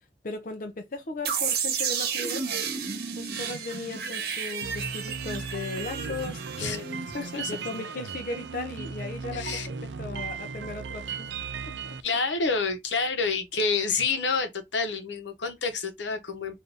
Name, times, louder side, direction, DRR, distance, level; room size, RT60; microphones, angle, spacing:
voice 1, 0.2-2.5 3.2-7.0 7.5-11.3 11.6-12.0, left 3 dB, 50° left, 0.6 m, -37 dB
sound 1, 1.2-8.0, right 7 dB, 55° right, 1.0 m, -32 dB
sound 2, 4.6-12.0, right 5 dB, 75° right, 0.4 m, -37 dB
voice 2, 7.1-7.5 9.3-9.7 12.0-16.6, left 4 dB, 80° left, 1.0 m, -28 dB
3.4 x 2.6 x 3.8 m
head